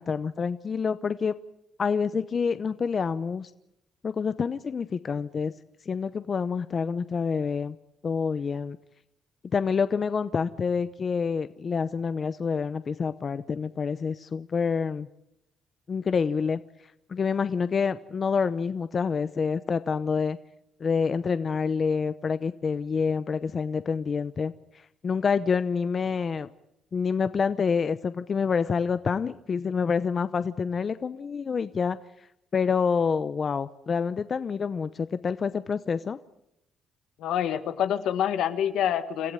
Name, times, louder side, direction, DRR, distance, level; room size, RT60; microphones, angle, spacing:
voice 1, 0.0-1.3 1.8-3.5 4.0-5.5 5.9-7.8 8.0-8.8 9.5-15.1 15.9-16.6 17.1-20.4 20.8-26.5 26.9-32.0 32.5-36.2, left 5 dB, 45° left, 13 dB, 0.8 m, -27 dB
voice 2, 37.2-39.3, left 10 dB, 80° left, 10 dB, 1.7 m, -26 dB
27.0 x 14.5 x 9.1 m, 0.84 s
cardioid pair, 90°, 0 cm